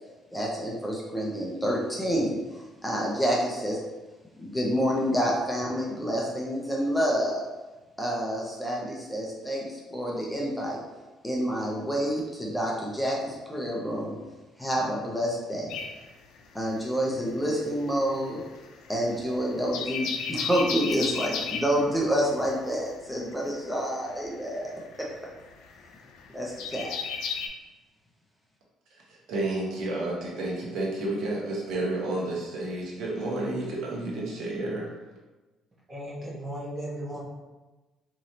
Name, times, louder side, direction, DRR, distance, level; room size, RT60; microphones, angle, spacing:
voice 1, 0.3-3.8 4.3-7.4 8.0-10.8 11.2-14.2 14.6-15.7 16.5-18.4 18.9-24.7 26.3-26.9, equal, 5° left, -3 dB, 0.7 m, -28 dB
sound 1, 15.7-17.1 17.4-27.5, left 6 dB, 85° left, 0.4 m, -35 dB
voice 2, 29.3-34.9, right 2 dB, 70° right, -3 dB, 1.1 m, -30 dB
voice 3, 35.9-37.2, right 1 dB, 25° right, -6 dB, 1.3 m, -36 dB
4.6 x 3.1 x 2.8 m, 1.2 s
cardioid pair, 120°, 0 cm